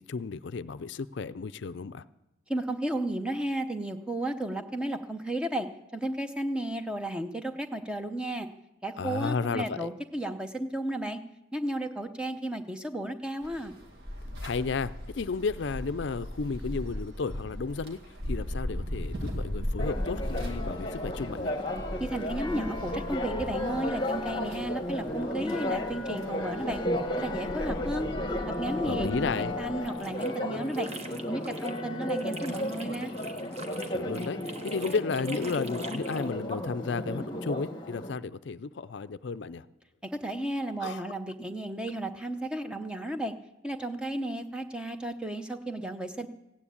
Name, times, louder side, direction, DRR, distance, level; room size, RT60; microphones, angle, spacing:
voice 1, 0.0-2.0 9.0-9.9 14.4-18.0 18.3-21.5 28.8-29.5 33.9-39.7 40.8-41.0, left 4 dB, 60° left, 14 dB, 0.4 m, -33 dB
voice 2, 2.5-5.7 5.9-8.5 8.8-11.2 11.5-13.7 22.0-26.8 27.2-28.1 28.6-29.3 29.6-30.9 31.3-33.1 40.0-43.3 43.6-46.3, right 1 dB, 5° right, 7 dB, 0.7 m, -33 dB
sound 1, 13.4-29.9, equal, 55° right, 2.2 m, -38 dB
Church bell, 19.8-38.1, left 1 dB, 20° left, 1.3 m, -34 dB
sound 2, 29.6-31.8 32.1-36.3, right 3 dB, 30° right, 1.1 m, -45 dB
15.5 x 9.8 x 8.5 m, 0.93 s
head